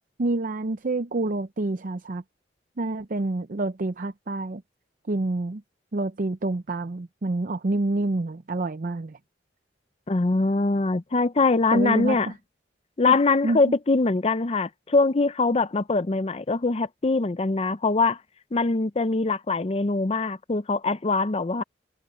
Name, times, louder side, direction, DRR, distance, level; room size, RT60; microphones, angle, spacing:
voice 1, 0.2-2.2 2.8-4.6 5.1-5.6 5.9-9.2 11.7-12.3 13.4-13.6, right 2 dB, 50° right, 0.6 m, -27 dB
voice 2, 10.1-12.3 13.0-18.2 18.5-21.6, left 3 dB, 35° left, 0.6 m, -23 dB
head